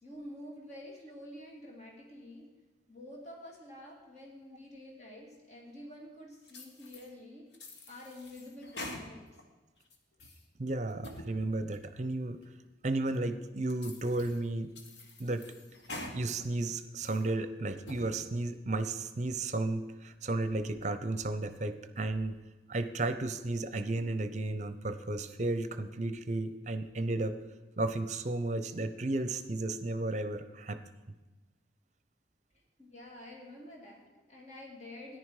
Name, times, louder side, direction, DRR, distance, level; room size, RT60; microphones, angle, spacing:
voice 1, 0.0-2.5 2.9-7.5 7.9-9.4 11.3-11.4 32.8-35.2, left 1 dB, 40° left, -1 dB, 2.4 m, -48 dB
sound 1, 6.5-7.1 7.5-9.4 9.8-10.4 10.9-11.3 11.7-11.8 12.4-12.5 13.1-13.2 13.7-14.4 14.8-16.2 16.6-17.3 17.7-18.1, left 1 dB, 80° left, 1.5 m, -46 dB
voice 2, 10.6-12.4 12.8-14.7 15.2-15.5 16.1-22.4 22.7-27.4 27.8-30.8, right 2 dB, 40° right, 11 dB, 0.7 m, -33 dB
13.5 x 10.5 x 4.9 m, 1.2 s
head